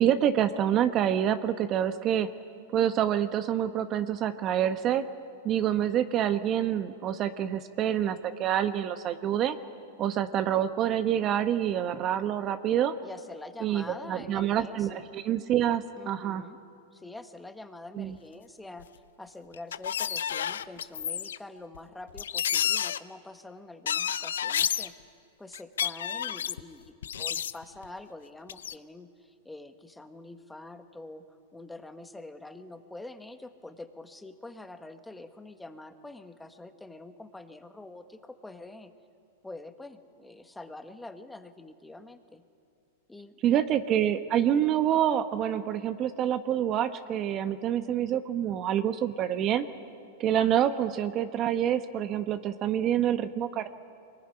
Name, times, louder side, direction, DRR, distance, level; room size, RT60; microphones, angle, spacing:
voice 1, 0.0-2.3 2.7-5.0 5.4-9.6 10.0-12.9 13.6-16.4 17.9-18.2 43.4-49.7 50.2-53.7, right 10 dB, 35° right, 10 dB, 1.1 m, -27 dB
voice 2, 13.0-15.0 16.0-16.6 16.9-18.9 19.2-24.9 25.4-31.2 31.5-38.9 39.4-42.4 43.1-43.4, left 2 dB, 5° left, 7 dB, 1.5 m, -45 dB
sound 1, 18.8-18.9 19.5-21.4 21.7-21.8 22.1-23.0 23.9-24.9 25.5-26.6 27.0-27.8 28.5-28.7, left 9 dB, 80° left, 0.6 m, -30 dB
23.5 x 21.0 x 10.0 m, 2.5 s
hypercardioid pair, 115°, 0 cm